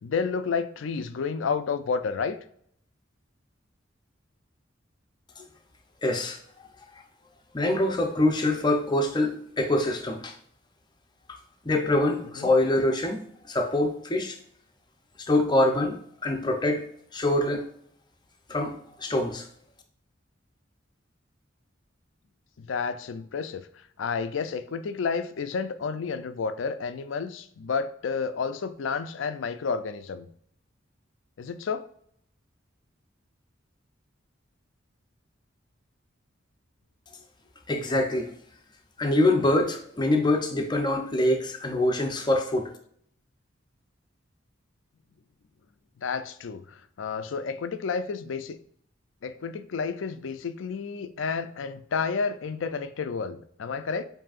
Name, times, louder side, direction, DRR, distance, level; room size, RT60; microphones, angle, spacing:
voice 1, 0.0-2.4 12.4-12.5 22.6-23.7 24.0-30.3 31.4-31.9 46.0-48.6 49.2-54.0, left 5 dB, 75° left, 11 dB, 0.4 m, -31 dB
voice 2, 6.0-6.4 7.5-10.3 11.3-11.4 11.6-14.4 15.3-16.9 17.1-17.7 18.5-19.5 37.7-38.3 39.0-42.7, left 1 dB, 20° left, 4 dB, 0.6 m, -25 dB
7.3 x 2.7 x 2.4 m, 0.64 s
head